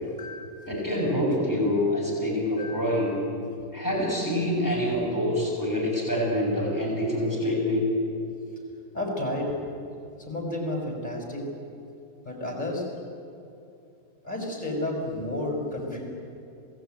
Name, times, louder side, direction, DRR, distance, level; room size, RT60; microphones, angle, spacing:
voice 1, 0.0-0.7 2.6-3.0 3.9-4.1 4.9-5.1 8.9-9.5 10.3-11.4 12.2-12.9 14.2-16.0, left 1 dB, 30° left, 0 dB, 6.3 m, -32 dB
voice 2, 0.7-3.2 3.7-7.9, left 1 dB, 10° left, -3 dB, 7.3 m, -26 dB
26.5 x 18.5 x 9.4 m, 2.7 s
omnidirectional pair, 1.6 m